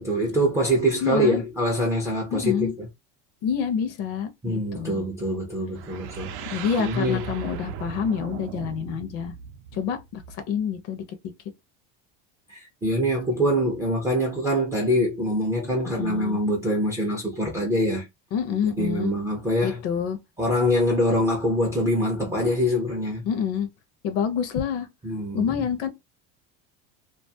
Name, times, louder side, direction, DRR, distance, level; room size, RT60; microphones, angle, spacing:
voice 1, 0.0-2.7 4.4-7.2 12.5-18.0 18.8-19.8 20.4-23.3 25.0-25.5, equal, 10° right, 0.3 m, -24 dB
voice 2, 1.0-1.4 2.3-2.7 3.4-5.0 6.5-9.3 9.7-11.0 15.8-16.4 18.3-19.1 19.6-20.2 23.2-23.7 24.0-24.9 25.3-25.9, left 7 dB, 45° left, 0.5 m, -27 dB
sound 1, 5.7-10.6, right 8 dB, 85° right, 0.5 m, -38 dB
2.4 x 2.2 x 2.6 m
cardioid pair, 165°, 34 cm